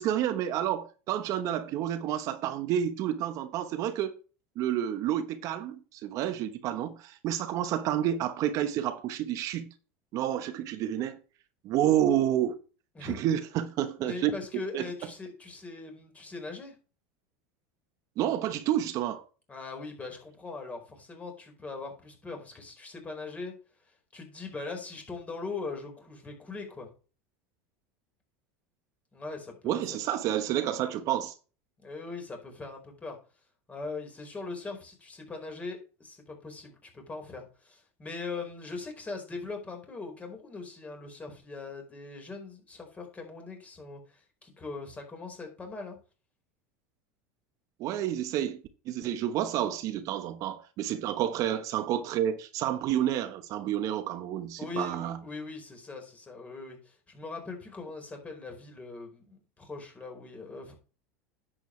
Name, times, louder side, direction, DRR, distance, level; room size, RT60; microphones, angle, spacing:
voice 1, 0.0-4.1 4.6-9.7 10.1-11.2 11.6-12.6 13.0-14.3 14.7-14.9 18.2-19.2 29.6-31.3 47.8-48.6 48.9-55.2, right 11 dB, 50° right, 1.1 m, -29 dB
voice 2, 12.9-13.3 14.0-16.7 19.5-23.5 24.1-26.9 29.1-29.8 31.8-33.2 33.7-46.0 54.6-60.7, left 3 dB, 20° left, 4.7 m, -41 dB
10.5 x 7.8 x 3.3 m
supercardioid pair, 110°, 7 cm